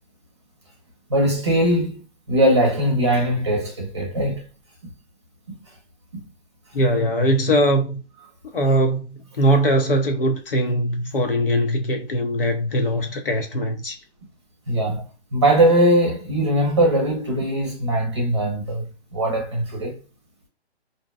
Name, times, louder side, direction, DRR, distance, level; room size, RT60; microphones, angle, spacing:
voice 1, 1.1-2.0 2.3-4.4 14.7-15.0 15.3-20.0, right 1 dB, 25° right, 0.7 m, -20 dB
voice 2, 6.7-8.0 8.5-14.0, equal, 55° left, 0.7 m, -21 dB
2.6 x 2.2 x 2.3 m
hypercardioid pair, 175°, 33 cm